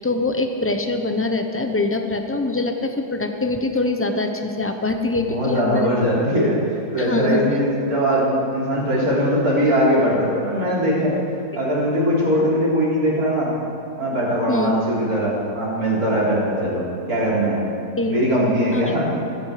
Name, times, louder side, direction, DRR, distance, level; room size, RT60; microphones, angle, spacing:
voice 1, 0.0-5.9 7.0-7.4 14.5-14.7 18.0-18.3 18.7-18.8, left 2 dB, 15° left, 5 dB, 0.5 m, -23 dB
voice 2, 5.3-11.1 11.5-13.5 14.0-16.8 17.1-17.6 18.1-19.1, equal, 60° right, -6 dB, 4.1 m, -20 dB
15.0 x 13.5 x 5.0 m, 2.9 s
omnidirectional pair, 1.8 m